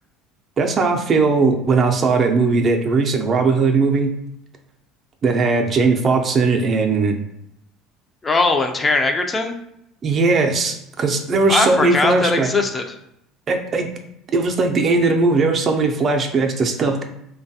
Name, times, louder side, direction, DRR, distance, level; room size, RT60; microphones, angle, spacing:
voice 1, 0.6-4.1 5.2-7.2 10.0-12.5 13.5-13.9 14.3-17.0, right 3 dB, 40° right, 4 dB, 0.4 m, -18 dB
voice 2, 8.2-9.6 11.5-12.9, left 3 dB, 25° left, 4 dB, 0.4 m, -20 dB
3.2 x 2.2 x 2.7 m, 0.79 s
supercardioid pair, 85°, 0 cm